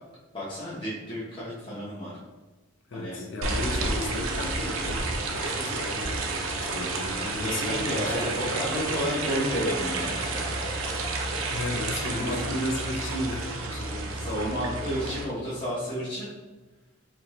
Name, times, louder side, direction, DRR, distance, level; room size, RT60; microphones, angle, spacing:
voice 1, 0.3-2.1 2.9-3.2 7.4-10.6 12.1-12.4 14.1-16.3, equal, 25° left, -10 dB, 0.9 m, -31 dB
voice 2, 2.9-5.0 5.3-6.1 6.6-8.5 11.5-14.3, left 2 dB, 60° left, 2 dB, 0.6 m, -34 dB
sound 1, 3.4-15.2, right 3 dB, 75° right, 0.6 m, -30 dB
4.2 x 2.8 x 3.1 m, 1.2 s
head